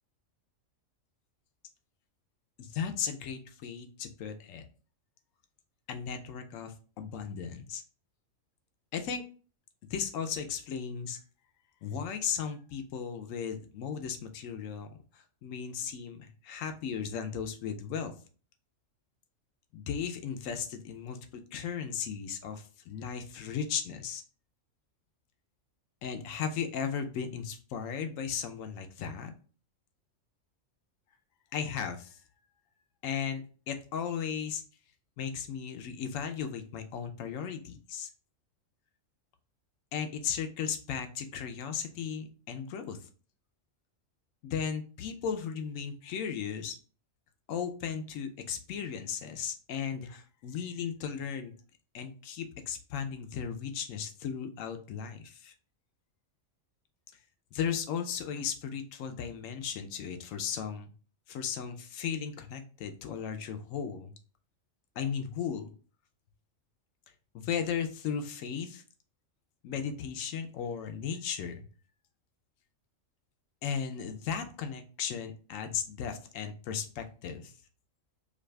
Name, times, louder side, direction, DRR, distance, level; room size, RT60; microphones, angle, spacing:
voice 1, 2.6-4.6 5.9-7.8 8.9-9.2 9.9-11.2 11.8-14.9 15.1-18.1 19.7-21.2 21.5-24.2 26.0-29.3 31.5-32.2 33.0-33.4 33.7-34.6 35.2-38.1 39.9-43.1 44.4-46.8 47.5-51.5 51.9-55.5 57.5-60.9 61.3-64.1 65.0-65.7 67.3-68.8 69.6-71.7 73.6-77.5, left 7 dB, 80° left, 7 dB, 0.9 m, -36 dB
4.9 x 2.3 x 2.2 m, 0.39 s
omnidirectional pair, 1.4 m